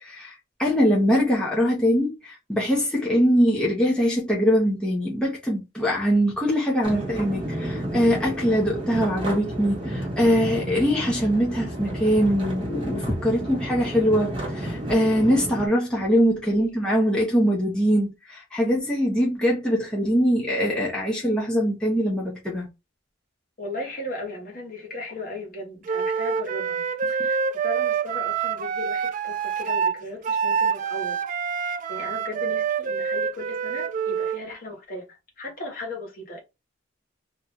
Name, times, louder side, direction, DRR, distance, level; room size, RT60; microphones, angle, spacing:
voice 1, 0.0-22.7, equal, 5° left, 0.8 m, -22 dB
sound 1, 6.8-15.7, right 1 dB, 25° right, 1.1 m, -31 dB
voice 2, 16.6-17.0 23.6-26.8 27.1-31.2 31.6-35.1 35.4-36.4, left 2 dB, 50° left, 1.4 m, -36 dB
Wind instrument woodwind instrument, 25.9-34.4, right 6 dB, 40° right, 0.3 m, -26 dB
2.8 x 2.3 x 3.8 m
head